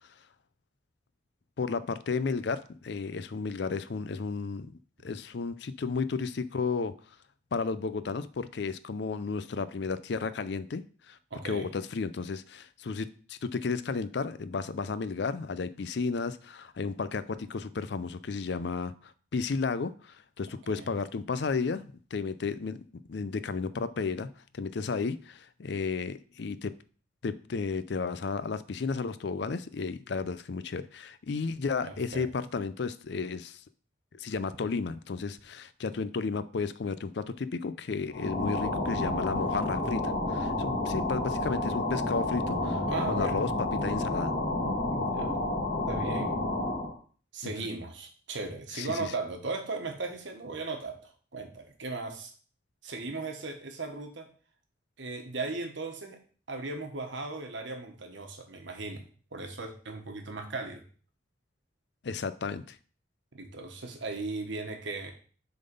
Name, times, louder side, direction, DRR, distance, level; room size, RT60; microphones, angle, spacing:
voice 1, 1.6-6.9 7.5-11.2 11.4-22.8 23.1-24.3 24.5-26.7 27.2-33.6 34.2-44.3 47.4-47.5 48.7-49.1 62.0-62.8, left 4 dB, 60° left, 14 dB, 0.4 m, -33 dB
voice 2, 11.3-11.7 20.7-20.9 31.8-32.3 42.9-43.4 44.9-45.4 45.9-46.3 47.3-52.3 52.8-54.3 55.0-56.2 56.5-59.0 59.3-60.8 63.3-65.1, right 3 dB, 70° right, 5 dB, 1.3 m, -37 dB
sound 1, 38.1-47.0, left 2 dB, 45° left, 1.4 m, -30 dB
7.0 x 3.9 x 5.3 m, 0.41 s
head